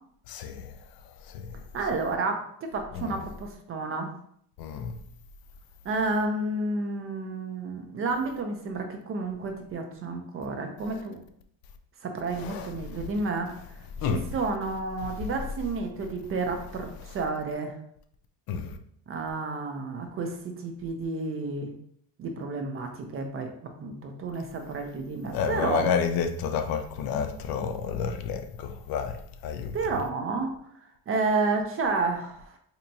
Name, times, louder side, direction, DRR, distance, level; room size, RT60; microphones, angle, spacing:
voice 1, 0.3-0.6 4.6-4.9 12.5-12.6 14.0-14.2 18.5-18.7 25.3-29.1 29.4-29.7, left 6 dB, 60° left, 0.5 m, -29 dB
voice 2, 1.7-4.1 5.8-11.2 12.0-13.5 14.0-17.8 19.1-21.7 22.2-23.5 23.8-25.9 29.7-30.5 31.1-32.6, right 3 dB, 35° right, 0.5 m, -30 dB
4.4 x 2.8 x 2.6 m
cardioid pair, 160°, 40 cm